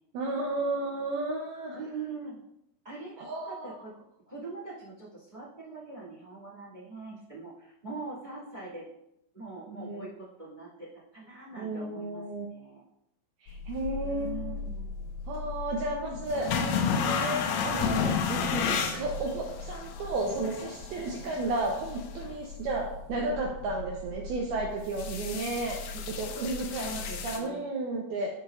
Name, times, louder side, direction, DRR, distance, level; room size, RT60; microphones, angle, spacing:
voice 1, 0.1-1.8 3.2-3.7 9.7-10.1 11.6-12.5 13.4-14.6 15.3-28.3, right 2 dB, 80° right, -1 dB, 2.3 m, -33 dB
voice 2, 1.7-2.4 2.8-3.9 4.3-8.9 9.3-12.2 12.5-12.8 14.0-15.1 21.2-21.3 26.8-27.6, right 3 dB, 20° right, -8 dB, 1.1 m, -43 dB
sound 1, 13.5-27.4, left 6 dB, 80° left, 3.2 m, -33 dB
12.5 x 5.1 x 2.5 m, 0.83 s
omnidirectional pair, 5.4 m